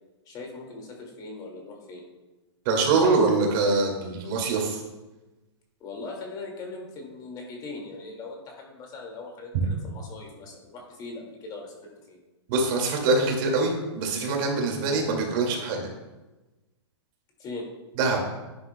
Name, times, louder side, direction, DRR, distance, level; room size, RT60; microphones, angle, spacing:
voice 1, 0.3-2.0 5.8-12.2 17.4-17.7, left 3 dB, 25° left, 0 dB, 2.1 m, -40 dB
voice 2, 2.7-4.8 12.5-15.8 18.0-18.2, right 3 dB, 45° right, 1 dB, 2.1 m, -24 dB
10.5 x 9.4 x 2.2 m, 1.1 s
hypercardioid pair, 135°, 15 cm